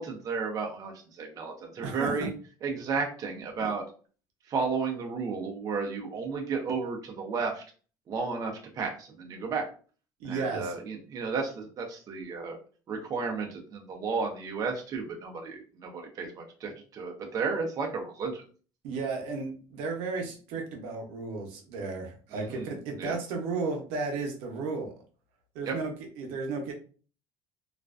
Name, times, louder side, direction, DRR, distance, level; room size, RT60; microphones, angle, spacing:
voice 1, 0.0-2.3 2.6-3.8 4.5-7.6 8.1-9.7 10.2-12.6 12.9-18.4 22.3-23.2 25.6-25.8, right 4 dB, 35° right, 1 dB, 0.6 m, -33 dB
voice 2, 1.8-2.3 3.6-3.7 10.2-10.7 18.8-24.9 25.5-26.7, right 4 dB, 90° right, 2 dB, 0.7 m, -34 dB
2.4 x 2.1 x 2.4 m, 0.39 s
cardioid pair, 135°, 10 cm